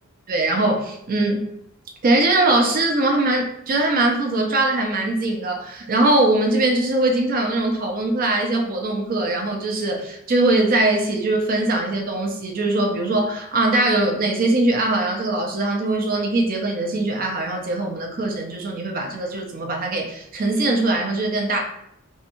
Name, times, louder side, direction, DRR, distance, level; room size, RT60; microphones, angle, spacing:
voice 1, 0.3-1.5 2.0-21.6, right 2 dB, 40° right, 2 dB, 0.4 m, -21 dB
2.8 x 2.2 x 2.6 m, 0.77 s
head